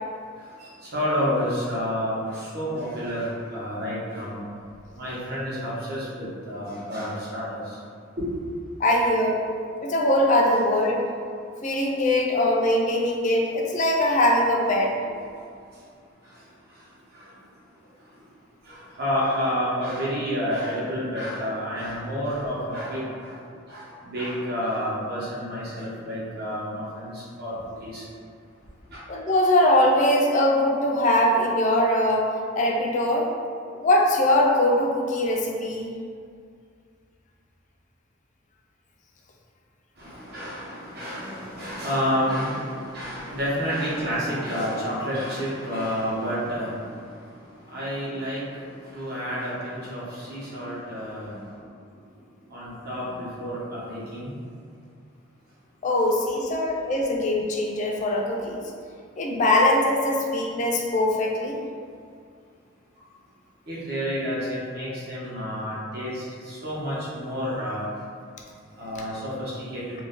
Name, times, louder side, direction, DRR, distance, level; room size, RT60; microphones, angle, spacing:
voice 1, 0.9-4.4 5.0-7.6 8.2-8.3 18.7-23.3 23.7-27.5 27.8-28.0 28.9-29.0 40.0-46.8 47.7-48.4 48.9-51.4 52.5-54.3 63.7-67.8 68.8-69.8, equal, 50° right, -8 dB, 0.8 m, -29 dB
voice 2, 8.8-9.4 9.8-11.0 11.6-14.9 29.1-32.3 32.6-33.3 33.7-35.9 55.8-58.6 59.2-61.6, left 1 dB, 35° left, -1 dB, 0.3 m, -22 dB
2.5 x 2.1 x 3.6 m, 2.2 s
head